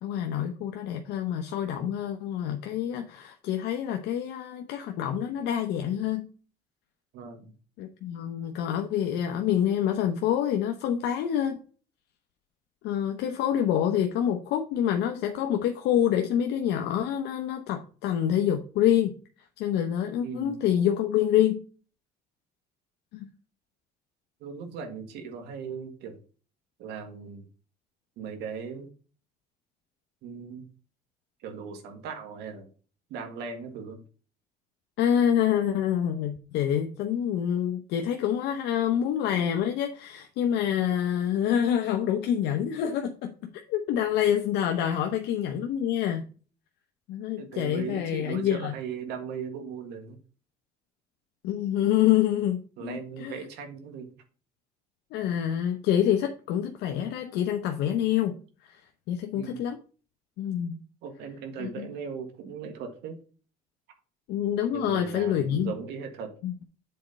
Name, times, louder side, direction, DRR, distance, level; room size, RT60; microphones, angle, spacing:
voice 1, 0.0-6.3 7.8-11.6 12.8-19.2 19.6-21.6 23.1-23.3 35.0-46.3 47.1-48.7 51.4-53.4 55.1-58.4 58.6-58.8 59.1-59.8 60.4-60.8 61.6-61.9 64.3-65.7 66.4-66.6, left 10 dB, 90° left, 5 dB, 0.9 m, -27 dB
voice 2, 7.1-7.6 20.2-20.6 24.4-26.2 26.8-27.5 28.2-28.9 30.2-30.7 31.4-32.7 33.1-34.0 44.9-45.0 47.4-50.2 52.8-54.2 59.3-59.6 61.0-63.2 64.7-66.3, right 6 dB, 90° right, 5 dB, 1.8 m, -38 dB
7.6 x 4.3 x 5.2 m, 0.38 s
cardioid pair, 110°, 17 cm